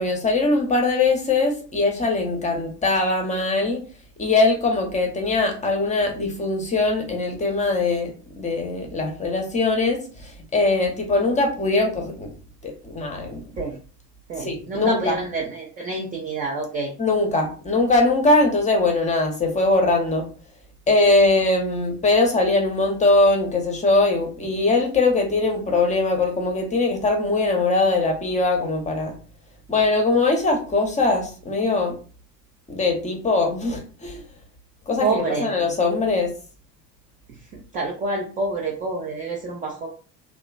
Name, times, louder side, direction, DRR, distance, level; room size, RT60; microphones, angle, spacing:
voice 1, 0.0-3.8 4.2-8.1 8.4-12.3 12.6-13.4 14.4-15.1 17.0-20.3 20.9-29.1 29.7-32.0 32.7-34.2 34.9-36.3, left 3 dB, 15° left, 1 dB, 0.7 m, -21 dB
voice 2, 14.3-16.9 35.0-35.5 37.5-39.9, right 3 dB, 20° right, -1 dB, 0.3 m, -27 dB
2.8 x 2.1 x 2.3 m, 0.39 s
figure-of-eight pair, 70°, 49 cm